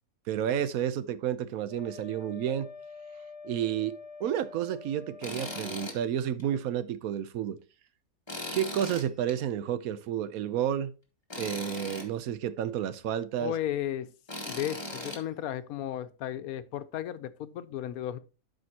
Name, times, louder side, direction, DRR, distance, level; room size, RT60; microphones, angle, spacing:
voice 1, 0.3-2.7 3.4-7.6 8.5-10.9 11.4-13.5, right 10 dB, 80° right, 1.1 m, -31 dB
Wind instrument woodwind instrument, 1.7-5.9, left 4 dB, 35° left, 0.4 m, -46 dB
Tools, 5.2-6.0 6.4-6.5 8.3-9.3 11.3-12.1 14.3-15.2, left 2 dB, 20° left, 1.5 m, -38 dB
voice 2, 13.4-14.1 14.4-18.2, left 11 dB, 85° left, 1.1 m, -34 dB
12.0 x 5.1 x 2.8 m
omnidirectional pair, 1.5 m